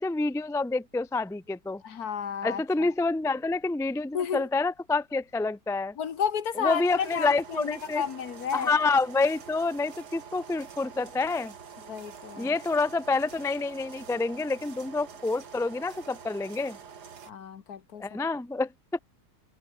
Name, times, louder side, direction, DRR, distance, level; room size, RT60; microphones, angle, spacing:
voice 1, 0.0-1.8 2.4-5.9 6.6-8.1 8.5-11.5 12.4-16.8 18.0-19.0, left 3 dB, 5° left, 0.3 m, -28 dB
voice 2, 1.8-2.9 4.1-4.4 6.0-8.7 11.9-12.5 17.3-18.2, left 7 dB, 70° left, 1.8 m, -32 dB
sound 1, 6.7-17.3, right 6 dB, 85° right, 2.4 m, -46 dB
omnidirectional pair, 1.7 m